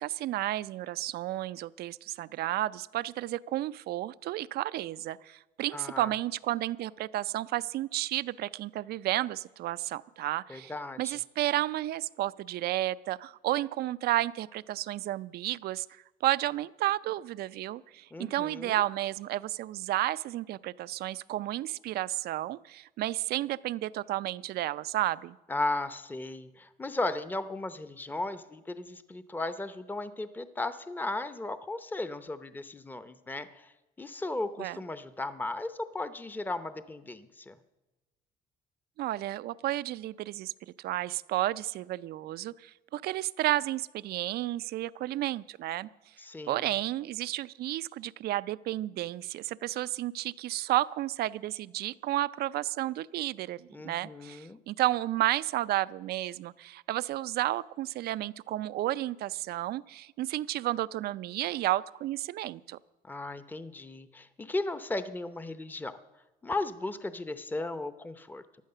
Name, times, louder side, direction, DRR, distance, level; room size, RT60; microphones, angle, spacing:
voice 1, 0.0-10.7 11.0-15.9 16.2-25.4 34.6-34.8 39.0-40.5 40.8-45.9 46.5-62.8, right 15 dB, 70° right, 17 dB, 0.5 m, -32 dB
voice 2, 5.7-6.1 10.5-11.2 18.1-18.8 25.5-33.7 34.0-37.6 46.2-46.7 53.7-54.6 63.0-66.0 66.4-68.4, left 2 dB, 10° left, 12 dB, 0.7 m, -36 dB
15.5 x 11.5 x 6.7 m, 1.1 s
cardioid pair, 110°, 17 cm